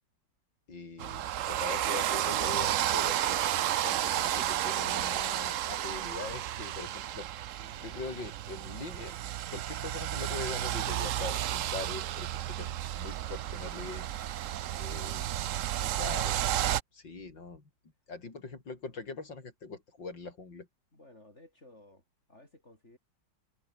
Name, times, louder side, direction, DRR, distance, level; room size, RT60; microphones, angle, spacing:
voice 1, 0.7-3.4 3.8-7.3 7.8-9.2 9.5-12.7 13.0-14.1 14.8-15.2 15.8-16.4 16.9-17.6 18.1-20.7, left 3 dB, 70° left, 4.9 m, -42 dB
sound 1, 1.0-16.8, right 12 dB, 70° right, 0.7 m, -32 dB
voice 2, 7.6-8.2 13.9-15.5 20.9-23.0, left 1 dB, 35° left, 8.0 m, -58 dB
omnidirectional pair, 2.0 m